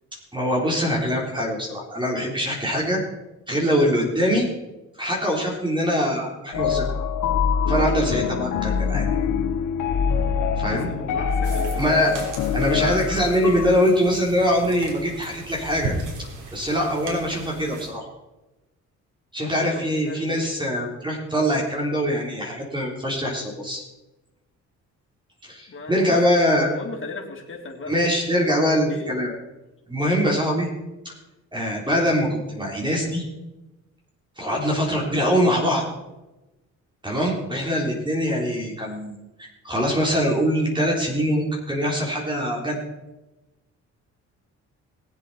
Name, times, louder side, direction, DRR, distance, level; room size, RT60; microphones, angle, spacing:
voice 1, 0.3-3.0 3.5-4.5 4.9-6.8 7.7-9.0 10.6-10.9 11.8-12.2 12.5-15.9 16.5-18.0 19.3-23.8 25.4-26.7 27.9-29.3 29.9-30.7 31.5-33.2 34.4-35.8 37.0-42.8, equal, 15° right, -2 dB, 3.6 m, -23 dB
sound 1, 6.5-13.8, left 6 dB, 85° left, 1.1 m, -24 dB
voice 2, 10.7-12.3 19.4-20.4 25.7-26.2 26.5-27.9 28.9-29.1, left 4 dB, 40° left, 0 dB, 3.5 m, -36 dB
sound 2, 11.4-17.9, right 3 dB, 85° right, 3.5 m, -36 dB
20.5 x 8.1 x 4.2 m, 1.0 s
cardioid pair, 90°, 30 cm